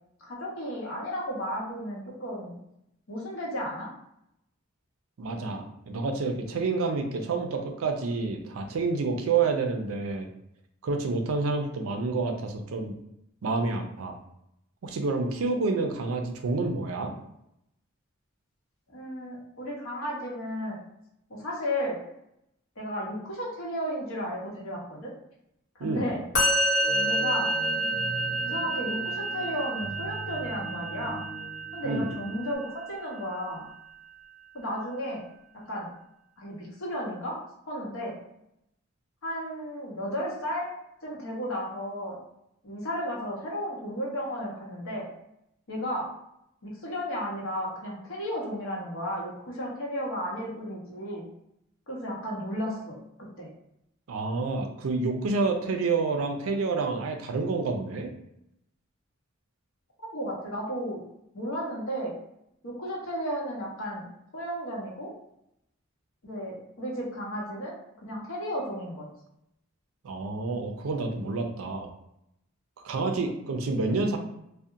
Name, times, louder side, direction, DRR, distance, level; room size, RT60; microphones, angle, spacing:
voice 1, 0.2-2.6 3.1-3.9 18.9-20.8 21.3-22.0 22.8-25.1 25.7-26.2 27.0-27.5 28.4-31.2 31.7-33.7 34.5-35.3 35.7-35.9 36.4-37.4 37.7-38.2 39.2-40.7 41.0-42.2 42.6-45.1 45.7-46.1 46.6-51.3 51.9-53.5 60.1-61.0 61.3-62.1 62.6-64.1 64.3-65.1 66.2-67.7 68.0-69.1, equal, 70° left, -3 dB, 0.8 m, -33 dB
voice 2, 5.2-10.3 10.8-13.0 13.4-14.1 14.8-17.1 25.8-26.1 31.8-32.1 54.1-58.1 70.0-71.9 72.8-74.2, right 3 dB, 80° right, 4 dB, 0.4 m, -28 dB
Musical instrument, 26.3-33.6, right 1 dB, 45° left, 1.0 m, -29 dB
sound 1, 26.8-32.6, equal, 20° left, 0.7 m, -41 dB
2.7 x 2.1 x 2.4 m, 0.80 s
head